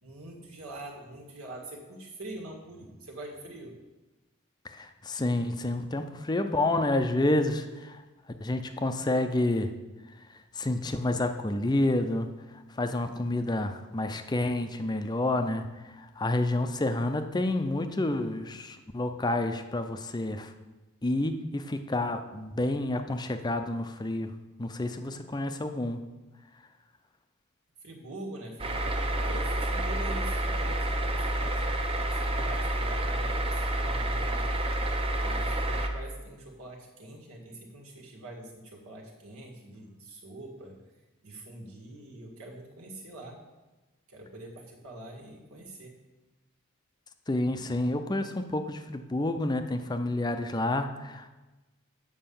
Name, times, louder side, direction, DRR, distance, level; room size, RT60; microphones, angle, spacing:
voice 1, 0.0-3.7 27.8-31.6 32.2-34.5 35.1-40.7 41.2-43.4 44.1-45.9, right 1 dB, 80° right, -1 dB, 1.9 m, -44 dB
voice 2, 4.6-8.0 8.4-9.7 10.6-12.3 12.7-20.5 21.0-26.0 47.3-51.3, left 2 dB, 20° left, 7 dB, 0.5 m, -29 dB
sound 1, 28.6-35.9, right 1 dB, 25° right, 0.7 m, -29 dB
7.7 x 5.4 x 7.0 m, 1.1 s
head